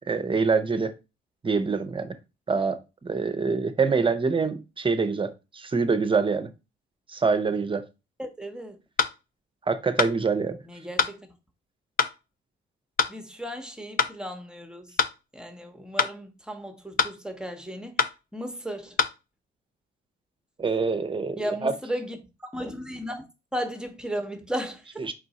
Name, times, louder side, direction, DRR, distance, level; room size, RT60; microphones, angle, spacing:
voice 1, 0.1-0.9 1.4-2.1 2.5-2.8 3.0-6.5 7.1-7.8 9.7-10.6 20.6-21.7 25.0-25.1, right 4 dB, 25° right, 0.6 m, -25 dB
voice 2, 8.2-8.8 10.7-11.3 13.1-14.9 15.3-18.0 18.3-19.0 21.4-22.2 22.4-23.3 23.5-25.1, equal, 5° right, 0.9 m, -35 dB
sound 1, 9.0-9.2 10.0-10.2 11.0-11.2 12.0-12.2 13.0-13.2 14.0-14.2 15.0-15.2 16.0-16.2 17.0-17.2 18.0-18.2 19.0-19.2, left 6 dB, 45° left, 0.5 m, -24 dB
4.9 x 2.5 x 4.0 m
cardioid pair, 90°, 20 cm